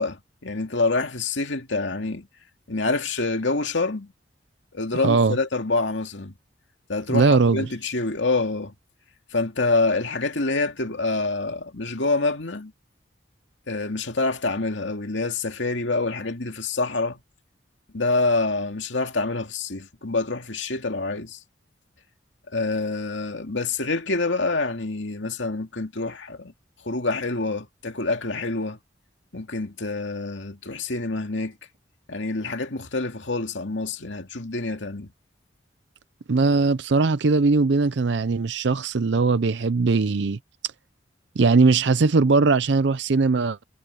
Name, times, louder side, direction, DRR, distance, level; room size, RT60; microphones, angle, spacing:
voice 1, 0.0-2.3 2.7-4.1 4.7-6.3 6.9-8.7 9.3-12.7 13.7-17.2 17.9-21.4 22.5-26.5 26.8-28.8 29.3-31.5 32.1-35.1, left 3 dB, 80° left, 2.3 m, -26 dB
voice 2, 5.0-5.4 7.1-7.7 36.3-40.4 41.4-43.6, right 4 dB, 70° right, 0.5 m, -20 dB
head